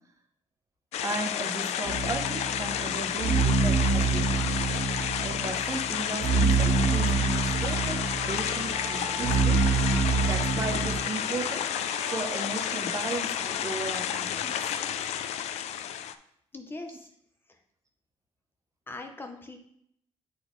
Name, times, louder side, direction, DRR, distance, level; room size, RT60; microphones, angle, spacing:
sound 1, 0.9-16.1, left 10 dB, 80° left, 0.4 m, -31 dB
voice 1, 1.0-4.5 5.2-9.6 10.2-11.7 12.1-14.8 16.9-17.0, right 3 dB, 30° right, 4 dB, 0.7 m, -36 dB
sound 2, 1.8-11.0, right 4 dB, 55° right, 1.8 m, -26 dB
Trumpet, 6.2-13.6, right 2 dB, 75° right, 1.3 m, -42 dB
voice 2, 16.5-17.1 18.9-19.6, left 2 dB, 20° left, 4 dB, 0.5 m, -40 dB
8.3 x 4.0 x 3.1 m, 0.71 s
cardioid pair, 145°, 11 cm